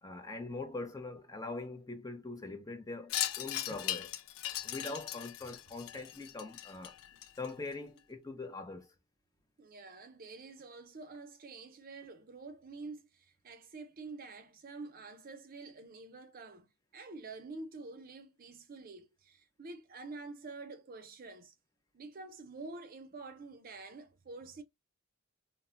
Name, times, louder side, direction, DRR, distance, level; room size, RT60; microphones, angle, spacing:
voice 1, 0.0-4.1 4.6-6.9 7.4-8.9, left 3 dB, 15° left, 0.5 m, -42 dB
Wind chime, 3.1-7.7, left 12 dB, 75° left, 0.3 m, -39 dB
voice 2, 9.6-21.5 21.9-24.6, right 3 dB, 40° right, 0.5 m, -48 dB
2.1 x 2.1 x 3.6 m
head